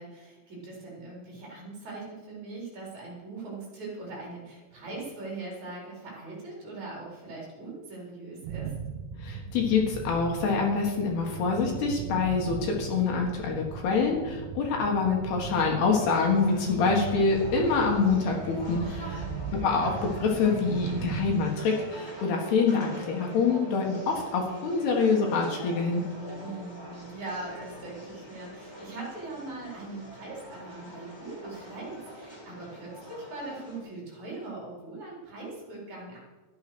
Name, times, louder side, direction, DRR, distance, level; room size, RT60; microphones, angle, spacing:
voice 1, 0.0-8.7 18.8-19.3 26.4-36.2, right 2 dB, 40° right, -4 dB, 5.6 m, -41 dB
sound 1, 8.4-21.4, right 6 dB, 75° right, 2.8 m, -38 dB
voice 2, 9.2-18.9 19.6-26.0, left 4 dB, 65° left, 0 dB, 3.5 m, -26 dB
sound 2, 16.0-33.8, equal, 5° left, 3.2 m, -44 dB
14.0 x 10.5 x 6.2 m, 1.3 s
omnidirectional pair, 5.2 m